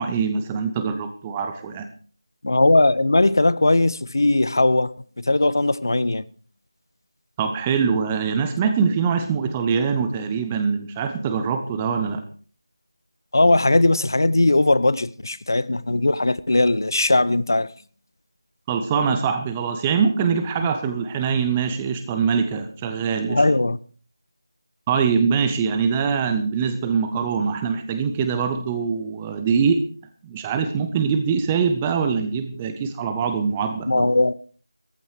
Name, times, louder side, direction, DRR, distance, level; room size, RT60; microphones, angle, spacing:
voice 1, 0.0-1.9 7.4-12.2 18.7-23.4 24.9-29.8 30.2-34.1, right 6 dB, 10° right, 0.6 m, -23 dB
voice 2, 2.4-6.2 13.3-17.7 23.3-23.8 33.9-34.3, left 2 dB, 55° left, 0.7 m, -19 dB
14.5 x 12.5 x 4.7 m
figure-of-eight pair, 175°, 2 cm